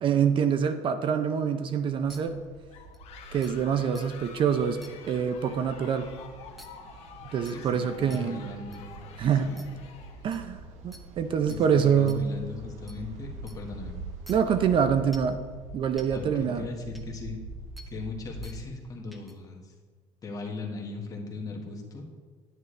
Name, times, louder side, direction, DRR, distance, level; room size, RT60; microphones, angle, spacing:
voice 1, 0.0-2.4 3.3-4.8 5.1-6.1 7.3-8.5 9.2-9.5 10.2-12.2 14.3-15.4 15.7-16.7, right 7 dB, 45° right, 10 dB, 0.6 m, -25 dB
sound 1, 2.0-18.7, right 3 dB, 70° right, 1.3 m, -45 dB
sound 2, 2.1-2.2 2.9-3.0 3.4-3.5 3.9-4.1 4.8-4.9 6.6-6.7 7.4-7.6 8.1-8.2 8.7-8.8 9.6-9.7 10.3-10.4 10.9-11.0 11.5-11.6 12.1-12.2 12.9-13.0 13.5-13.6 14.3-14.4 15.1-15.3 16.0-16.1 16.9-17.0 17.8-17.9 18.4-18.6 19.1-19.3, equal, ahead, 0.9 m, -49 dB
sound 3, 2.7-10.5, left 7 dB, 55° left, 1.1 m, -48 dB
voice 2, 7.5-9.6 11.5-13.9 14.4-14.6 16.1-17.4 17.9-19.7 20.2-22.0, left 3 dB, 30° left, 0 dB, 1.6 m, -39 dB
10.5 x 9.4 x 3.3 m, 1.5 s
cardioid pair, 145°, 12 cm